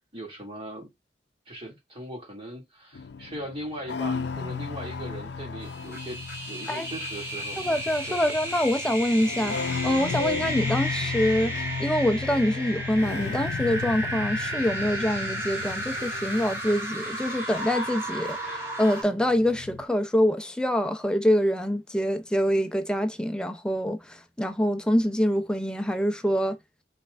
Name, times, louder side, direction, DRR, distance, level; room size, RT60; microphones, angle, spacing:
voice 1, 0.1-0.9 1.5-7.6 8.1-8.2, right 1 dB, 30° right, 2.3 m, -39 dB
sound 1, 2.9-18.7 19.0-19.8, left 5 dB, 75° left, 0.5 m, -35 dB
sound 2, 5.6-19.0, right 1 dB, 15° right, 1.3 m, -33 dB
voice 2, 7.6-26.6, equal, 5° left, 0.5 m, -25 dB
5.7 x 3.3 x 2.4 m
head